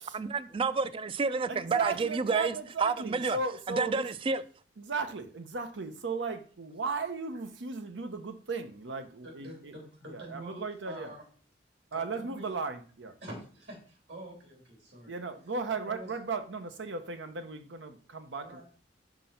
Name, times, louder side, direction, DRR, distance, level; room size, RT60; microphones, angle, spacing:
voice 1, 0.1-2.5 2.8-3.4 3.7-4.4, right 4 dB, 30° right, 0.4 m, -29 dB
voice 2, 1.5-4.1 4.8-9.7 10.1-11.1 11.9-13.2 15.1-18.6, right 4 dB, 85° right, 0.8 m, -36 dB
voice 3, 9.2-11.2 11.9-12.6 13.2-15.2 15.7-16.1 18.4-18.6, right 1 dB, 70° right, 3.1 m, -46 dB
6.0 x 5.0 x 5.7 m
head